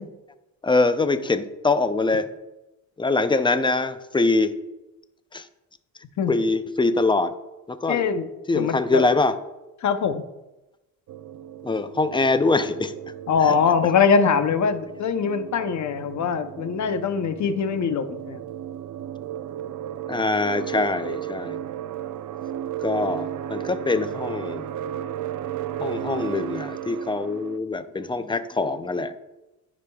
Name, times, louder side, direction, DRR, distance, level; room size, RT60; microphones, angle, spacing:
voice 1, 0.6-2.3 3.0-4.5 5.3-5.5 6.3-7.3 7.7-8.1 8.5-9.3 11.6-12.9 13.4-13.6 13.8-13.9 20.1-21.6 22.8-24.7 25.8-29.1, left 3 dB, 15° left, 11 dB, 0.4 m, -23 dB
voice 2, 7.9-8.3 8.5-9.0 9.8-10.2 13.3-18.4, left 6 dB, 55° left, 9 dB, 0.7 m, -22 dB
sound 1, 11.1-27.6, right 11 dB, 60° right, 0.5 m, -34 dB
13.0 x 5.0 x 2.3 m, 0.99 s
cardioid pair, 90°, 35 cm